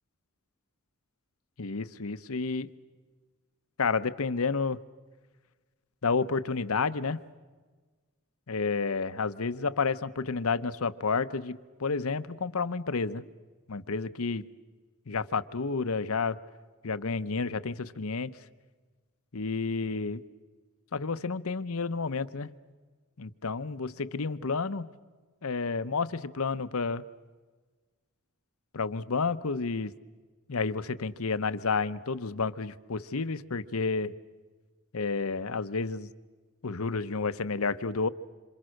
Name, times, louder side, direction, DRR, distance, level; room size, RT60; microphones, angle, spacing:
voice 1, 1.6-2.7 3.8-4.8 6.0-7.2 8.5-13.3 13.7-14.4 15.1-16.4 16.8-18.3 19.3-20.2 20.9-22.5 23.2-24.9 25.4-27.0 28.7-29.9 30.5-34.1 34.9-36.1 36.6-38.1, left 4 dB, 70° left, 14 dB, 0.9 m, -30 dB
27.5 x 27.0 x 6.5 m, 1.4 s
head